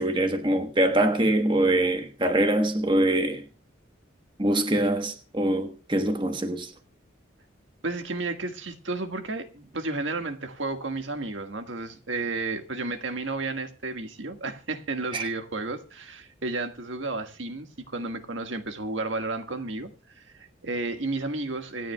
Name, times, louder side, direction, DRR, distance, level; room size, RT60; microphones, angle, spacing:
voice 1, 0.0-3.4 4.4-6.7 15.1-15.3, right 1 dB, 25° right, 1.2 m, -24 dB
voice 2, 7.8-21.9, right 3 dB, 80° right, 1.6 m, -32 dB
26.0 x 10.0 x 2.3 m
head